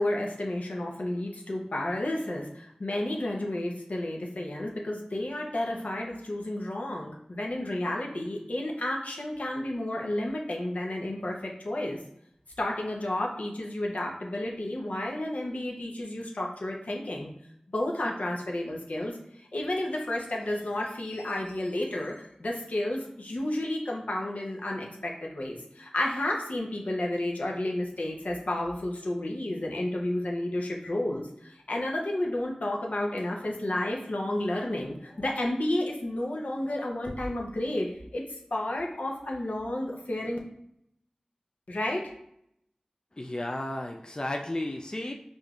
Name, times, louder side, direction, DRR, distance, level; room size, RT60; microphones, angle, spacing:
voice 1, 0.0-12.0 12.6-17.3 17.7-19.2 19.5-37.9 38.1-38.2 38.5-40.4 41.7-42.0, left 1 dB, 80° left, -1 dB, 0.7 m, -31 dB
voice 2, 43.2-45.1, left 1 dB, 35° left, 2 dB, 0.4 m, -33 dB
4.9 x 2.6 x 2.4 m, 0.74 s
wide cardioid pair, 45°, 2 cm